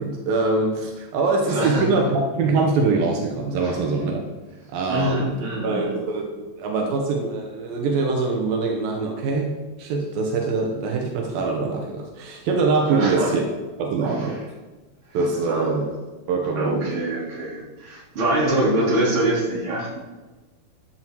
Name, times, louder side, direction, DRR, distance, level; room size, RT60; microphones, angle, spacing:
voice 1, 0.0-4.2 4.7-5.4 5.6-13.4 13.8-14.4 15.1-16.0 16.3-16.9, right 3 dB, 80° right, 1 dB, 3.0 m, -23 dB
voice 2, 1.5-2.1 3.6-3.7 4.9-5.9 12.9-13.3 14.0-14.1 15.4-15.8 16.5-20.0, right 1 dB, 35° right, -5 dB, 3.9 m, -24 dB
13.0 x 9.6 x 4.7 m, 1.2 s
omnidirectional pair, 4.1 m